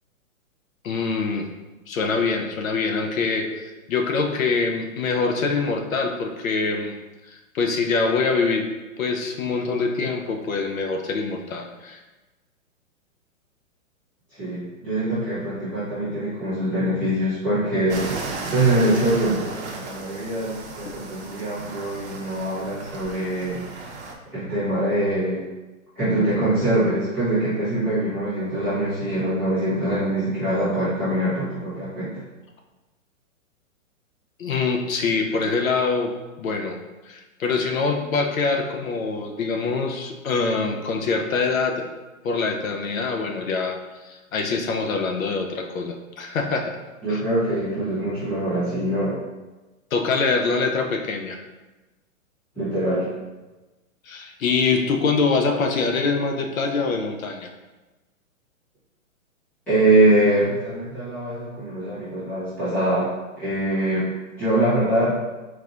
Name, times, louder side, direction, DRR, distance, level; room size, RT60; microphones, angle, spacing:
voice 1, 0.8-1.5 1.9-6.9 7.3-8.7 9.0-12.0 20.8-20.9 34.4-36.1 36.4-36.8 37.0-41.8 42.2-46.8 47.1-47.2 49.9-51.4 54.1-57.5, left 4 dB, 75° left, 3 dB, 0.8 m, -24 dB
voice 2, 14.4-23.9 24.3-25.4 26.0-32.2 47.0-49.2 52.5-53.1 59.7-64.1 64.4-65.2, right 1 dB, 5° left, -15 dB, 0.7 m, -23 dB
sound 1, 17.9-24.1, right 3 dB, 55° right, 0.8 m, -35 dB
4.4 x 3.9 x 2.5 m, 1.1 s
hypercardioid pair, 170°, 41 cm